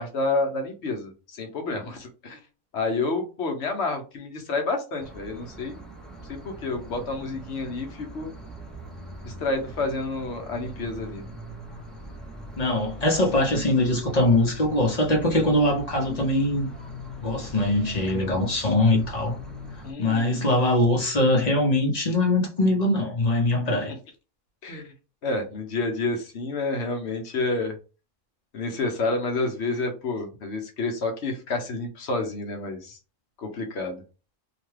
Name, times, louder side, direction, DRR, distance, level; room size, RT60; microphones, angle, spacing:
voice 1, 0.0-2.4 2.7-5.8 6.3-8.3 9.2-11.2 19.8-20.3 24.6-24.9 25.2-27.8 28.5-33.0 33.4-34.0, left 3 dB, 65° left, 1.0 m, -29 dB
sound 1, 5.0-19.9, equal, ahead, 0.3 m, -41 dB
voice 2, 12.6-16.7 17.2-19.4 20.0-23.9, left 1 dB, 40° left, 0.7 m, -22 dB
2.8 x 2.2 x 3.2 m
omnidirectional pair, 1.3 m